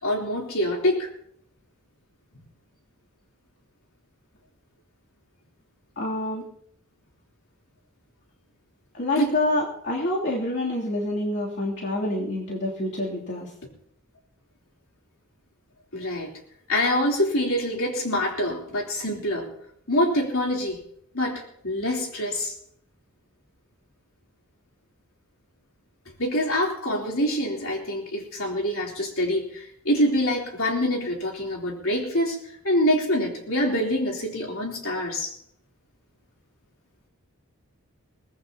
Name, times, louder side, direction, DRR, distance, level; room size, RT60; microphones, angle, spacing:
voice 1, 0.0-1.1 9.2-9.3 15.9-16.3 16.7-19.5 19.9-20.8 21.1-22.5 26.2-35.4, left 1 dB, 70° left, -1 dB, 3.7 m, -25 dB
voice 2, 6.0-6.4 8.9-13.5, left 1 dB, 50° left, -5 dB, 3.1 m, -27 dB
23.0 x 18.5 x 2.9 m, 0.68 s
head